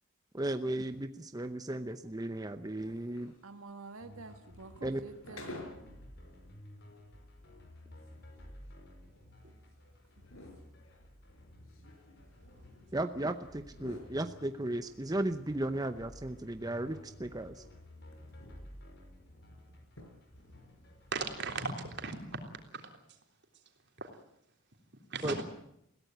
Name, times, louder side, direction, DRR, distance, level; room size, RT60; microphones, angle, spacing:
voice 1, 0.3-3.3 4.8-5.0 12.9-17.6 25.2-25.4, right 1 dB, 20° right, 9 dB, 0.8 m, -35 dB
sound 1, 2.6-6.0 6.4-6.5 7.1-7.2 7.7-13.2 13.5-14.9 15.3-17.3 17.6-18.7 19.1-19.2 19.5-19.6 19.9-20.4, left 2 dB, 80° left, 5.0 m, -53 dB
voice 2, 3.4-5.6, right 3 dB, 85° right, 7 dB, 1.4 m, -48 dB
sound 2, 4.0-22.5, left 1 dB, 55° left, 5.3 m, -54 dB
voice 3, 21.1-22.4 22.7-23.0 24.0-24.1 25.1-25.4, right 4 dB, 55° right, 4 dB, 3.5 m, -37 dB
21.5 x 16.5 x 9.3 m, 0.78 s
head